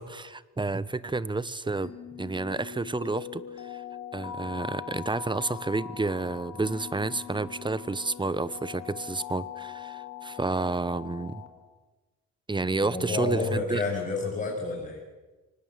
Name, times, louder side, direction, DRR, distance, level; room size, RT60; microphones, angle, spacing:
voice 1, 0.0-3.8 4.1-11.4 12.5-13.8, right 3 dB, 15° right, 17 dB, 1.0 m, -30 dB
sound 1, 1.8-11.5, left 9 dB, 70° left, 3.8 m, -41 dB
voice 2, 12.8-15.0, left 3 dB, 25° left, -3 dB, 6.8 m, -30 dB
24.5 x 19.5 x 7.5 m, 1.2 s
cardioid pair, 90°, 30 cm